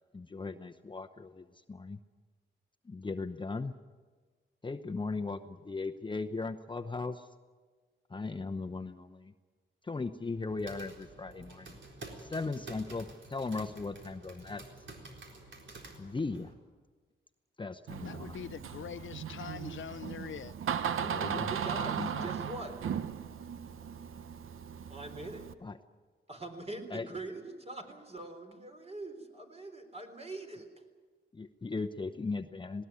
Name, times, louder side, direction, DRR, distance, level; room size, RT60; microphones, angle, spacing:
voice 1, 0.0-2.0 2.8-3.8 4.6-7.3 8.1-9.3 9.8-11.8 12.2-14.7 16.0-16.5 17.6-18.4 21.0-21.5 21.8-22.3 25.6-25.8 26.9-27.1 31.3-32.9, left 3 dB, 25° left, 0.8 m, -38 dB
sound 1, 10.3-16.5, right 2 dB, 65° right, 4.0 m, -50 dB
Door, 17.9-25.5, right 8 dB, 90° right, 0.9 m, -37 dB
voice 2, 18.0-20.5, left 9 dB, 70° left, 0.6 m, -43 dB
voice 3, 21.5-22.8 24.9-25.4 26.3-30.7, right 2 dB, 30° right, 3.8 m, -43 dB
19.5 x 18.5 x 9.6 m
cardioid pair, 95°, 21 cm